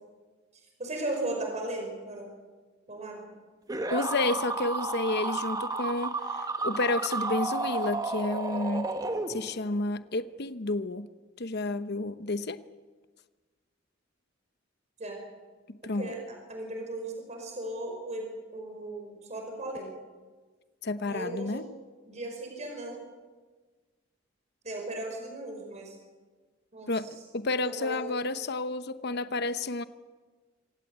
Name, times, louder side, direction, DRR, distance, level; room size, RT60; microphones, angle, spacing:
voice 1, 0.8-2.3 2.9-3.2 15.0-15.2 15.9-18.3 18.5-19.9 21.1-21.7 22.1-23.1 24.6-26.0 26.7-26.9 27.6-28.1, right 1 dB, 35° right, 2 dB, 5.4 m, -36 dB
sound 1, 3.7-9.7, right 3 dB, 20° right, 1.3 m, -32 dB
voice 2, 3.9-8.9 9.3-11.1 11.4-12.6 15.7-16.1 20.8-21.7 26.9-29.8, left 2 dB, 60° left, 12 dB, 1.0 m, -31 dB
26.0 x 17.0 x 8.2 m, 1.4 s
head